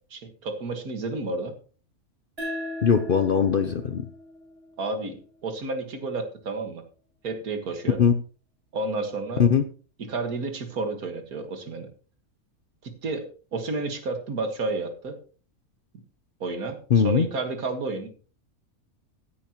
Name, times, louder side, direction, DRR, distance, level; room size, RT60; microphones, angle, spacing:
voice 1, 0.1-1.5 4.8-6.8 7.2-8.0 8.7-9.4 10.0-11.9 12.8-13.3 13.5-15.2 16.4-18.1, right 3 dB, 75° right, 6 dB, 2.1 m, -31 dB
sound 1, 2.4-5.6, left 1 dB, 40° right, 5.1 m, -38 dB
voice 2, 2.8-4.1 8.0-8.1 9.4-9.6 16.9-17.3, left 7 dB, 50° left, 10 dB, 0.7 m, -20 dB
15.0 x 9.8 x 3.0 m, 0.39 s
omnidirectional pair, 1.6 m